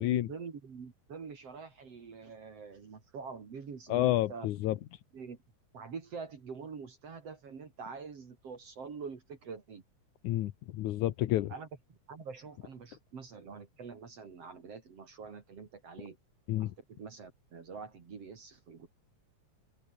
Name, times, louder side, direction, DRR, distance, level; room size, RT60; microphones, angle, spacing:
voice 1, 0.0-4.5 5.1-5.4 5.7-9.8 11.5-16.2 16.6-18.9, right 5 dB, 55° right, 3.8 m, -45 dB
voice 2, 3.9-4.8 10.2-11.5 16.5-16.7, left 14 dB, 80° left, 2.4 m, -29 dB
open air
omnidirectional pair, 3.4 m